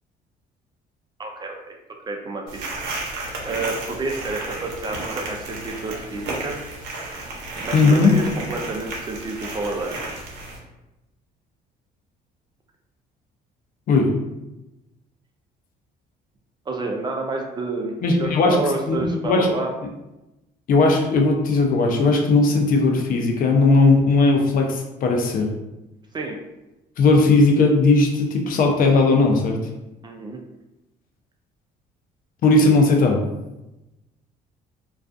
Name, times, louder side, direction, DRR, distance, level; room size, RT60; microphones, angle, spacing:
voice 1, 1.2-1.8 2.1-2.7 3.4-6.6 7.6-9.9 16.7-17.9 18.2-19.7 26.1-26.4 30.0-30.4, right 3 dB, 25° right, 2 dB, 0.3 m, -29 dB
sound 1, 2.5-10.6, right 2 dB, 80° right, 0.6 m, -33 dB
voice 2, 7.7-8.2 13.9-14.1 18.0-18.6 18.9-19.5 20.7-25.5 27.0-29.6 32.4-33.2, left 3 dB, 55° left, 2 dB, 0.5 m, -17 dB
2.3 x 2.3 x 2.4 m, 0.97 s
cardioid pair, 110°, 17 cm